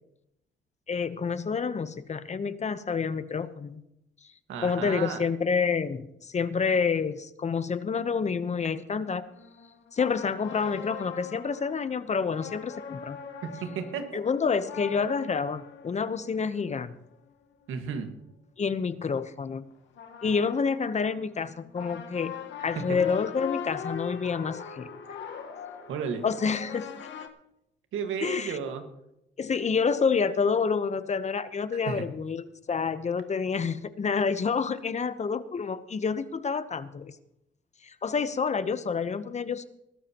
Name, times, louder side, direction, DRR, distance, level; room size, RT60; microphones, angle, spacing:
voice 1, 0.9-3.8 4.6-9.2 9.9-13.2 14.1-17.0 18.6-19.6 20.2-22.4 22.6-24.9 26.2-26.9 28.2-28.6 29.4-37.1 37.8-39.6, left 5 dB, 35° left, 13 dB, 0.9 m, -28 dB
voice 2, 4.5-5.2 13.4-14.2 17.7-18.1 22.8-23.0 25.9-26.2 27.9-28.8 31.9-32.1, right 6 dB, 85° right, 6 dB, 1.8 m, -33 dB
sound 1, 9.0-17.7 19.7-27.3, left 7 dB, 70° left, 1.4 m, -42 dB
20.5 x 12.5 x 3.0 m, 0.81 s
cardioid pair, 90°, 20 cm